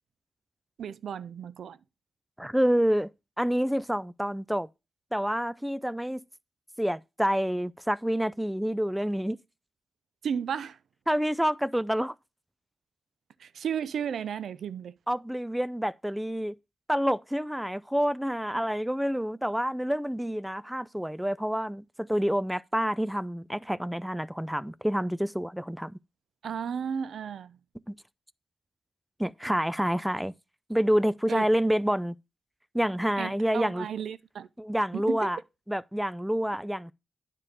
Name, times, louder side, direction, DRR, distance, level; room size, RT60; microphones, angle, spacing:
voice 1, 0.8-1.8 10.2-10.8 13.4-14.9 18.5-18.6 26.4-27.6 31.3-31.5 33.2-34.5 34.9-35.3, right 7 dB, 80° right, 0.4 m, -34 dB
voice 2, 2.4-3.1 3.4-4.7 5.1-6.2 6.8-9.4 11.1-12.1 15.1-16.5 16.9-26.0 27.9-28.0 29.2-30.3 30.7-32.1 32.7-33.9 34.6-35.4 35.7-36.9, equal, 5° right, 0.5 m, -28 dB
9.8 x 3.7 x 6.6 m
supercardioid pair, 50°, 0 cm